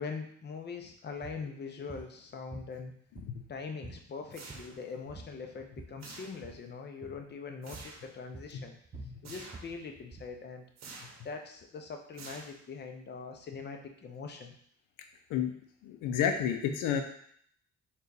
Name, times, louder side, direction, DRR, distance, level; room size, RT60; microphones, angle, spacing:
voice 1, 0.0-2.9 3.5-8.8 9.2-10.7 11.2-14.5, left 5 dB, 35° left, 4 dB, 0.6 m, -42 dB
sound 1, 1.2-1.4 1.9-2.1 2.5-3.5 3.8-4.1 4.3-4.8 5.1-6.0 6.3-6.6 7.0-7.2 7.7-8.0 8.3-10.4, right 3 dB, 15° right, 0.4 m, -48 dB
sound 2, 4.3-5.0 6.0-6.7 7.6-8.1 9.2-9.8 10.8-11.3 12.1-12.8, right 3 dB, 60° right, 0.8 m, -49 dB
voice 2, 15.8-17.0, left 8 dB, 90° left, 6 dB, 0.5 m, -30 dB
4.0 x 2.4 x 3.9 m, 0.64 s
cardioid pair, 90°, 30 cm